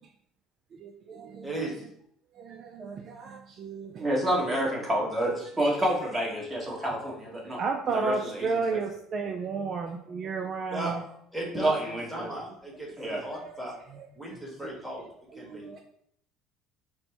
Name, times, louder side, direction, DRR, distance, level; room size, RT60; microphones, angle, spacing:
voice 1, 0.8-1.7 2.3-4.1 4.4-4.5 7.6-11.0 11.7-11.8 13.0-13.5 13.9-14.1 15.3-15.8, right 4 dB, 45° right, 3 dB, 0.4 m, -33 dB
voice 2, 1.4-1.8 10.7-10.9 11.3-13.7 14.2-15.1 15.4-15.6, right 1 dB, ahead, -3 dB, 1.3 m, -36 dB
voice 3, 4.0-7.6 7.9-8.5 11.5-12.3 13.0-13.2, right 1 dB, 20° right, -2 dB, 1.4 m, -28 dB
4.3 x 2.1 x 4.1 m, 0.70 s
supercardioid pair, 95°, 0 cm